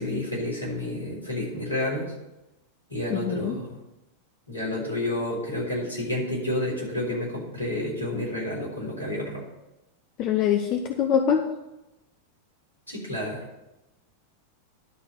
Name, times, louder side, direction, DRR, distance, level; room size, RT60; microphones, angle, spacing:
voice 1, 0.0-2.1 2.9-3.7 4.5-9.4 12.9-13.4, left 1 dB, 80° left, -4 dB, 3.8 m, -30 dB
voice 2, 3.1-3.6 10.2-11.4, left 8 dB, 40° left, 4 dB, 0.8 m, -24 dB
11.0 x 4.3 x 7.9 m, 0.95 s
figure-of-eight pair, 90°, 0 cm